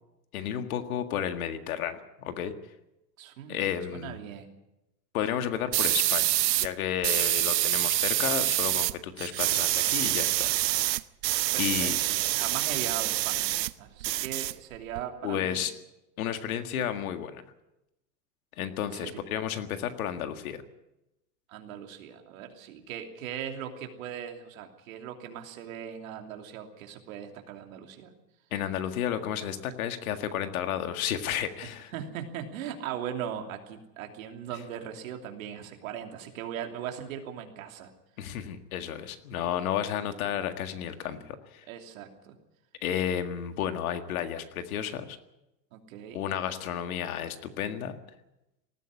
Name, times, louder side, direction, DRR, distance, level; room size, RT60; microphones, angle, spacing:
voice 1, 0.3-2.5 3.5-4.2 5.1-6.3 6.6-10.5 11.6-12.0 15.2-15.7 16.2-17.5 18.6-20.6 28.5-31.9 38.2-41.6 42.8-45.2 46.1-48.0, left 9 dB, 60° left, 8 dB, 1.9 m, -32 dB
voice 2, 3.2-4.5 11.5-15.6 18.9-19.2 21.5-28.1 31.6-37.9 41.0-41.2 41.7-42.3 45.7-46.2, right 9 dB, 55° right, 4 dB, 3.0 m, -39 dB
sound 1, 5.7-6.7 7.0-8.9 9.2-13.7 14.0-15.0, right 16 dB, 90° right, 0.9 m, -26 dB
19.5 x 14.5 x 9.7 m, 0.92 s
supercardioid pair, 175°, 49 cm